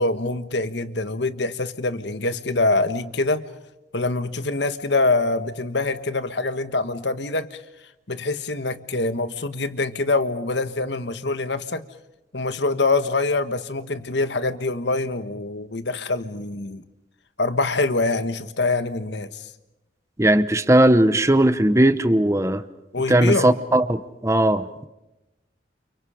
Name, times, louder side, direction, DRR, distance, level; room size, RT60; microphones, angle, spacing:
voice 1, 0.0-3.5 3.9-7.6 8.1-11.9 12.3-16.8 17.4-19.3 22.9-23.5, left 3 dB, 70° left, 11 dB, 1.5 m, -24 dB
voice 2, 20.2-22.6 23.1-24.9, right 1 dB, 15° right, 12 dB, 0.9 m, -18 dB
29.5 x 29.5 x 5.0 m, 0.96 s
head